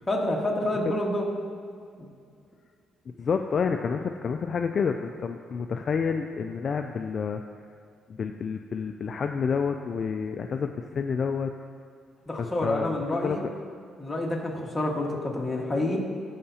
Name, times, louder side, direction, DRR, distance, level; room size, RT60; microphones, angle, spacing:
voice 1, 0.1-1.2 2.0-2.1 12.3-13.5 14.0-16.0, left 1 dB, 15° left, -2 dB, 1.6 m, -28 dB
voice 2, 3.1-7.4 8.1-11.5 12.4-13.5, left 6 dB, 50° left, 5 dB, 0.3 m, -29 dB
15.0 x 5.7 x 2.8 m, 2.3 s
cardioid pair, 90°, 0 cm